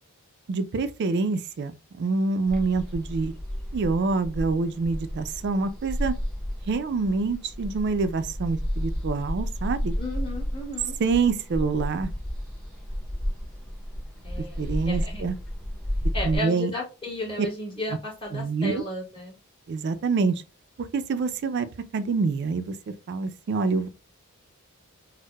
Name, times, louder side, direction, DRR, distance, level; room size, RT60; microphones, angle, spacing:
voice 1, 0.5-1.7 2.0-3.3 3.7-6.1 6.7-9.9 11.0-12.1 14.6-15.4 16.2-16.7 18.3-18.8 19.7-20.4 20.8-21.7 21.9-22.8 23.1-23.9, right 4 dB, 50° right, 0.3 m, -26 dB
sound 1, 2.5-16.4, equal, 5° left, 0.6 m, -32 dB
voice 2, 10.0-11.0 14.2-15.2 16.1-19.3, left 1 dB, 25° left, 1.2 m, -34 dB
4.4 x 2.0 x 2.2 m
head